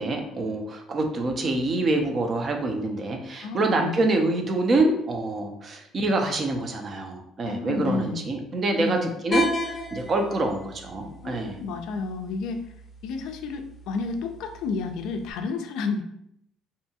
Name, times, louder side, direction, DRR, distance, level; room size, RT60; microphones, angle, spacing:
voice 1, 0.0-11.6, right 2 dB, 40° right, 3 dB, 0.5 m, -26 dB
voice 2, 3.4-4.1 7.4-8.3 8.8-9.2 11.2-12.7 13.0-16.0, left 4 dB, 80° left, 6 dB, 0.3 m, -31 dB
sound 1, 9.3-15.3, equal, 30° left, 0.6 m, -34 dB
2.7 x 2.2 x 2.7 m, 0.76 s
cardioid pair, 105°, 0 cm